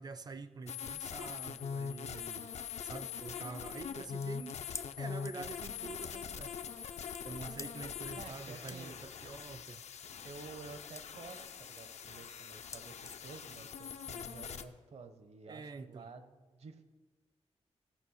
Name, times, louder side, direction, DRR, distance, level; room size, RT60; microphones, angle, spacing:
voice 1, 0.0-4.6 5.0-6.6 7.2-9.8 15.5-16.1, right 4 dB, 35° right, 13 dB, 0.5 m, -47 dB
sound 1, 0.7-14.6, left 7 dB, 75° left, 0.6 m, -43 dB
sound 2, 4.1-14.2, left 4 dB, 25° left, 0.4 m, -54 dB
voice 2, 7.4-7.7 8.2-9.0 10.2-16.8, right 4 dB, 70° right, 9 dB, 0.9 m, -51 dB
15.0 x 5.4 x 6.4 m, 1.3 s
wide cardioid pair, 175°, 11 cm